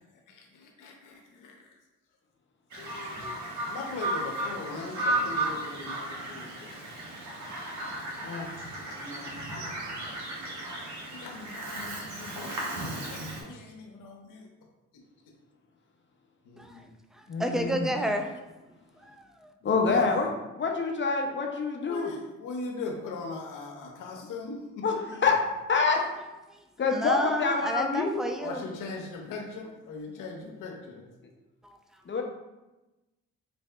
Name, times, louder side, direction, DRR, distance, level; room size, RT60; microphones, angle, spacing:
voice 1, 0.3-1.6 2.8-3.4 3.7-6.7 9.0-10.6 11.1-12.7 13.1-14.5 16.4-16.9 19.6-20.3 21.8-24.8 28.4-31.0, left 3 dB, 80° left, 1 dB, 0.8 m, -40 dB
Bird vocalization bird call bird song, 2.7-13.4, right 1 dB, 65° right, 1.3 m, -34 dB
voice 2, 8.2-8.5 17.3-17.9 19.6-20.3 20.5-22.1 24.8-25.4 25.7-26.0 26.8-28.2 32.1-32.2, left 4 dB, 35° left, 2 dB, 0.8 m, -26 dB
voice 3, 17.4-18.3 26.9-28.6, right 1 dB, ahead, 5 dB, 0.4 m, -29 dB
4.0 x 2.6 x 3.3 m, 1.1 s
supercardioid pair, 60°, 31 cm